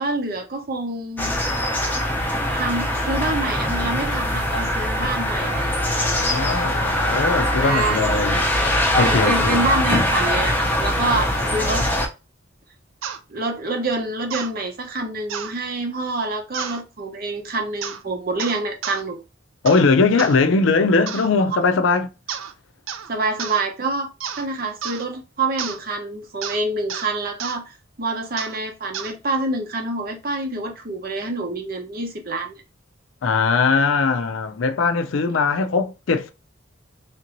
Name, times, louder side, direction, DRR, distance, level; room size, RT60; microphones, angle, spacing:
voice 1, 0.0-1.3 2.5-5.7 7.6-8.0 9.0-11.9 13.3-19.2 23.1-24.1 24.4-32.5, right 2 dB, 50° right, 0.8 m, -26 dB
sound 1, 1.2-12.1, left 1 dB, 10° left, 0.6 m, -22 dB
voice 2, 5.9-8.5 9.0-9.6 19.6-22.1 33.2-36.3, left 4 dB, 75° left, 0.5 m, -20 dB
sound 2, 13.0-13.2 14.3-14.5 15.3-15.5 16.5-16.8 17.8-18.0 18.4-19.0 19.7-19.9 20.2-20.4 21.1-21.3 22.3-22.5 22.9-23.1 23.4-23.6 24.2-24.5 24.8-25.0 25.6-25.8 26.4-26.6 26.9-27.1 27.4-27.6 28.4-28.6 28.9-29.1, right 8 dB, 90° right, 0.5 m, -31 dB
3.6 x 2.6 x 2.9 m
head